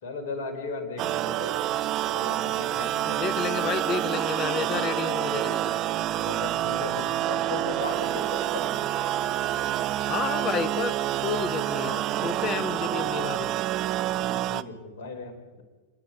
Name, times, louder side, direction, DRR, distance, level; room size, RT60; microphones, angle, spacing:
voice 1, 0.0-1.7 2.1-3.1 6.2-8.8 12.0-12.1 14.2-15.6, left 3 dB, 55° left, 6 dB, 4.6 m, -37 dB
sound 1, 1.0-14.6, right 13 dB, 35° right, 0.7 m, -28 dB
sound 2, 2.4-13.2, left 2 dB, 10° left, 1.7 m, -44 dB
voice 2, 3.0-5.7 10.0-11.0 11.2-13.6, left 7 dB, 30° left, 17 dB, 1.0 m, -31 dB
29.5 x 10.5 x 9.3 m, 1.3 s
figure-of-eight pair, 90°, 0 cm